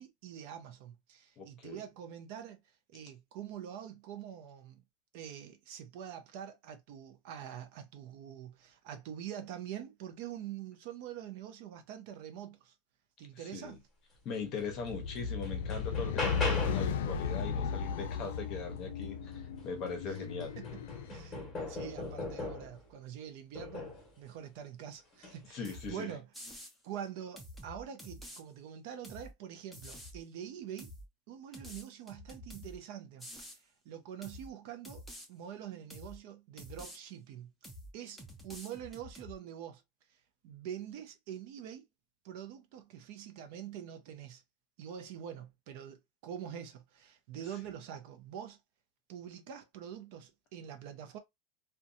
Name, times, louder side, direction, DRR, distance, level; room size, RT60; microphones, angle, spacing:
voice 1, 0.0-4.8 5.1-12.7 13.2-13.8 20.1-20.2 20.6-26.3 26.8-30.9 31.3-37.5 37.9-39.8 40.1-41.9 42.2-44.4 44.8-48.6 49.1-51.2, right 9 dB, 55° right, 0.5 m, -45 dB
voice 2, 1.4-1.8 13.5-13.8 14.2-20.6 25.5-26.1, left 5 dB, 35° left, 0.8 m, -40 dB
sound 1, 14.6-14.7 15.2-17.0 19.3-19.4 19.9-22.8 23.6-24.1 25.1-25.4, left 3 dB, 20° left, 1.1 m, -39 dB
sound 2, 14.7-21.1, left 6 dB, 85° left, 0.4 m, -35 dB
sound 3, 25.6-25.9 26.3-26.7 27.4-28.4 29.0-29.3 29.7-30.2 30.8-31.1 31.5-32.8 33.2-33.6 34.2-34.5 34.8-35.3 35.9-36.2 36.6-37.0 37.6-37.9 38.2-39.3, equal, ahead, 0.6 m, -48 dB
2.6 x 2.2 x 2.5 m
supercardioid pair, 160°, 0 cm